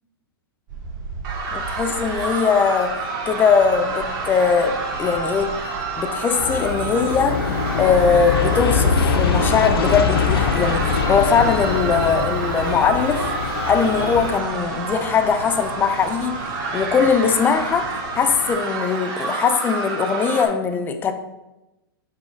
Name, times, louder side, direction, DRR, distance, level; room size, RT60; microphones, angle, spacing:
sound 1, 0.7-18.5, right 3 dB, 55° right, 1.1 m, -39 dB
sound 2, 1.2-20.5, right 3 dB, 35° right, 0.8 m, -29 dB
voice 1, 1.5-2.9 3.3-5.5 6.0-13.3 13.7-16.4 16.7-17.9 18.2-21.1, left 6 dB, 15° left, 7 dB, 0.3 m, -20 dB
Aircraft, 6.4-14.4, left 5 dB, 80° left, 0.6 m, -23 dB
3.9 x 2.3 x 4.6 m, 0.97 s
hypercardioid pair, 120°, 12 cm